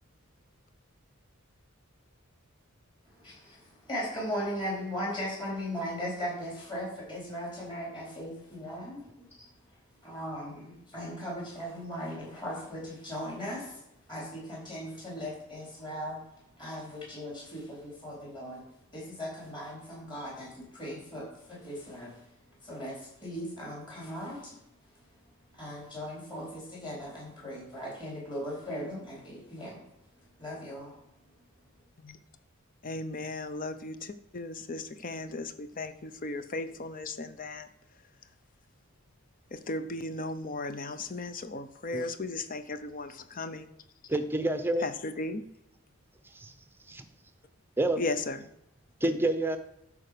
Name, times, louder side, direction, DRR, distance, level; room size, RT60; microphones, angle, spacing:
voice 1, 3.1-9.5 10.0-13.8 14.1-18.6 18.9-24.6 25.5-29.8 30.4-30.9, equal, 20° left, -4 dB, 4.5 m, -38 dB
voice 2, 32.8-37.7 39.5-43.7 44.8-45.5 48.0-48.4, left 2 dB, 40° left, 11 dB, 0.7 m, -36 dB
voice 3, 44.1-44.8 46.3-46.5 46.9-47.1 47.8-48.0 49.0-49.6, right 1 dB, 10° right, 9 dB, 0.7 m, -28 dB
12.0 x 4.9 x 6.8 m, 0.80 s
head